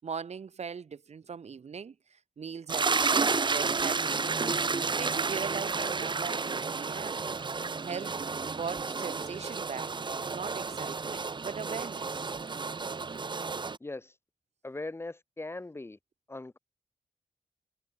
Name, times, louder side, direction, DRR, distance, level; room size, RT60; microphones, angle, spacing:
voice 1, 0.0-4.4 4.8-7.3 7.8-9.9 10.3-12.1, right 6 dB, 70° right, 6.8 m, -40 dB
sound 1, 2.7-13.8, right 4 dB, 40° right, 2.5 m, -31 dB
voice 2, 13.8-14.2 14.6-16.0 16.3-16.6, left 2 dB, 20° left, 1.9 m, -40 dB
wide cardioid pair, 135°, 12 cm